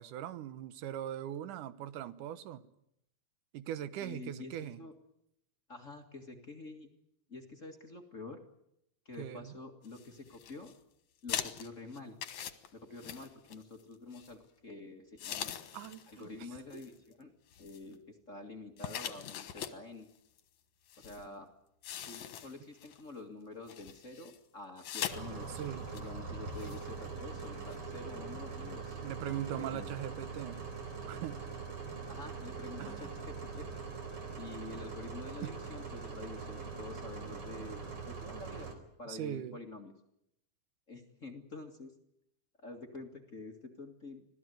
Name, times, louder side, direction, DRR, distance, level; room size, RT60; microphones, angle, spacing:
voice 1, 0.0-2.7 3.5-4.8 9.2-9.5 15.7-16.8 25.5-25.9 29.0-30.6 31.1-31.5 32.8-33.1 35.4-35.5 39.1-39.6, right 11 dB, 85° right, 2.6 m, -41 dB
voice 2, 4.0-4.9 5.7-6.9 7.3-8.4 9.1-10.7 11.2-12.2 12.7-15.5 16.1-17.3 17.6-20.1 21.0-21.5 22.0-25.5 25.9-29.0 29.3-29.9 32.1-33.7 34.4-38.7 39.0-39.9 40.9-41.9 42.6-44.3, left 3 dB, 30° left, 1.9 m, -48 dB
sound 1, 9.8-10.7 11.3-13.8 14.1-14.4 15.2-16.2 16.6-16.9 17.5-17.9 18.8-19.8 20.4-20.5 20.9-21.2 21.8-23.0 23.7-24.4 24.8-25.2 25.5-25.6 25.9-26.1 26.5-26.8 27.4-27.5 27.7-27.8, left 10 dB, 70° left, 2.6 m, -42 dB
sound 2, 25.1-38.7, right 5 dB, 45° right, 5.0 m, -43 dB
26.0 x 17.0 x 9.3 m
omnidirectional pair, 3.5 m